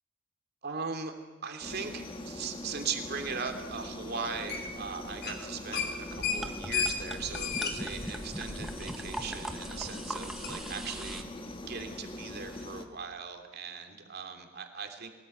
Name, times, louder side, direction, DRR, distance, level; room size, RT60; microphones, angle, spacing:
voice 1, 0.6-1.1 1.4-15.1, right 5 dB, 50° right, 5 dB, 2.8 m, -39 dB
sound 1, 1.6-12.8, left 1 dB, 25° left, 1.8 m, -42 dB
sound 2, 4.5-4.9 5.1-5.4 5.7-9.1 9.5-9.6 10.4-10.5, left 6 dB, 50° left, 3.7 m, -33 dB
sound 3, 6.2-11.2, equal, ahead, 1.2 m, -41 dB
22.5 x 20.0 x 9.1 m, 1.3 s
head